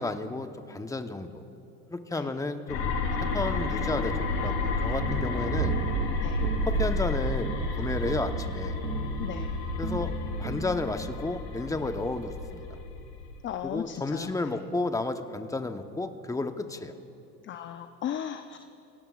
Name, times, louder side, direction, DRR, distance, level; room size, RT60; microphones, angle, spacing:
voice 1, 0.0-1.4 1.9-2.9 3.3-4.1 4.4-5.8 6.7-7.5 7.8-8.8 9.8-12.6 13.6-16.9, left 2 dB, 5° left, 8 dB, 0.9 m, -32 dB
sound 1, 2.7-13.4, left 4 dB, 80° left, 4.2 m, -31 dB
sound 2, 5.0-11.2, right 6 dB, 80° right, 1.2 m, -33 dB
voice 2, 5.4-5.9 6.2-6.4 9.2-9.5 13.4-14.3 17.4-18.6, left 10 dB, 25° left, 8 dB, 0.5 m, -37 dB
27.0 x 17.5 x 2.4 m, 2.7 s
hypercardioid pair, 90°, 48 cm